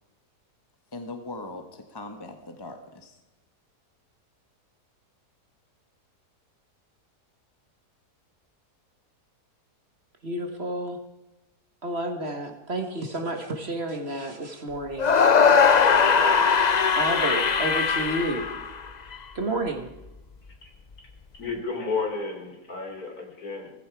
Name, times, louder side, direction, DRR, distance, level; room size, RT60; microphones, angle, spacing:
voice 1, 0.9-3.2, left 2 dB, 15° left, 5 dB, 1.5 m, -40 dB
voice 2, 10.2-11.0 11.8-15.3 16.9-18.5 19.4-19.9, right 1 dB, 40° right, 5 dB, 1.9 m, -30 dB
sound 1, 15.0-19.2, left 6 dB, 40° left, 0.6 m, -20 dB
voice 3, 21.4-23.7, left 4 dB, 65° left, 2 dB, 3.9 m, -32 dB
19.0 x 15.0 x 4.8 m, 1.0 s
omnidirectional pair, 1.7 m